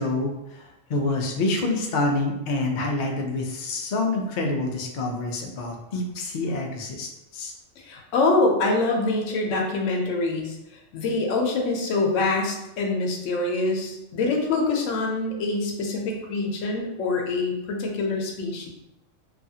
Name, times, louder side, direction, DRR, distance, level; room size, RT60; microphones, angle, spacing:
voice 1, 0.0-7.5, left 2 dB, 65° left, 1 dB, 0.5 m, -27 dB
voice 2, 7.8-10.6 10.9-18.7, left 3 dB, 85° left, 1 dB, 0.9 m, -25 dB
2.7 x 2.4 x 2.7 m, 0.92 s
omnidirectional pair, 1.3 m